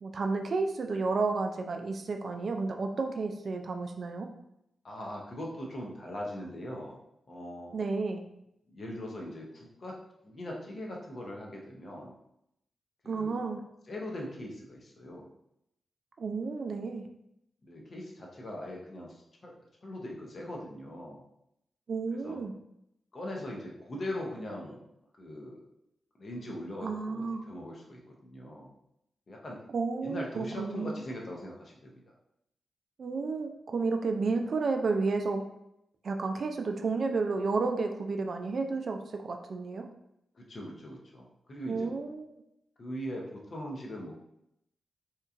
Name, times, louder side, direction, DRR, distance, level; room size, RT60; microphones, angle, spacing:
voice 1, 0.0-4.3 7.7-8.2 13.1-13.6 16.2-17.1 21.9-22.5 26.8-27.4 29.7-30.9 33.0-35.5 36.0-39.9 41.7-42.3, right 4 dB, 65° right, 5 dB, 0.3 m, -31 dB
voice 2, 4.8-7.0 7.3-7.7 8.7-10.0 10.2-12.1 13.0-13.4 13.9-15.3 17.6-19.5 19.8-21.2 22.2-22.4 23.1-24.8 25.2-25.6 26.2-28.7 29.3-29.6 30.0-32.0 40.3-41.9 42.8-44.1, left 1 dB, 55° left, -1 dB, 0.7 m, -40 dB
2.8 x 2.3 x 2.5 m, 0.79 s
supercardioid pair, 45°, 0 cm